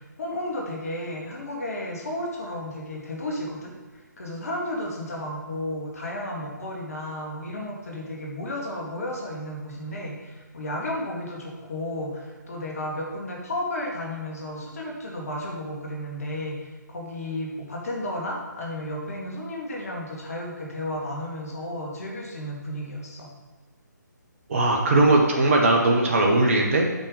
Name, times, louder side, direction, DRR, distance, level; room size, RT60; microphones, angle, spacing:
voice 1, 0.0-3.7 4.2-23.3, left 1 dB, 50° left, -1 dB, 2.1 m, -33 dB
voice 2, 24.5-26.8, right 2 dB, 45° right, 0 dB, 1.4 m, -19 dB
8.2 x 5.3 x 5.1 m, 1.4 s
figure-of-eight pair, 145°, 10 cm